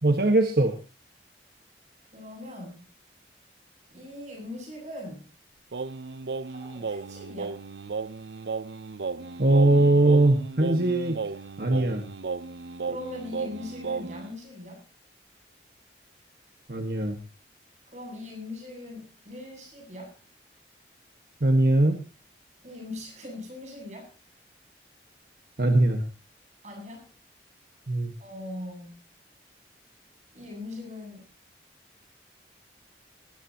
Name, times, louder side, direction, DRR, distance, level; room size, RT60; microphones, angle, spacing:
voice 1, 0.0-0.7 9.4-11.2 11.6-12.0 16.7-17.2 21.4-22.0 25.6-26.0 27.9-28.1, right 2 dB, 55° right, 5 dB, 1.5 m, -21 dB
voice 2, 2.1-2.9 3.9-5.2 6.5-7.6 12.8-14.8 17.9-20.1 22.6-24.1 26.6-27.1 28.2-29.0 30.3-31.3, left 2 dB, 40° right, 2 dB, 8.0 m, -40 dB
Singing, 5.7-14.3, right 4 dB, 75° right, 0.6 m, -35 dB
19.0 x 15.5 x 2.9 m, 0.33 s
head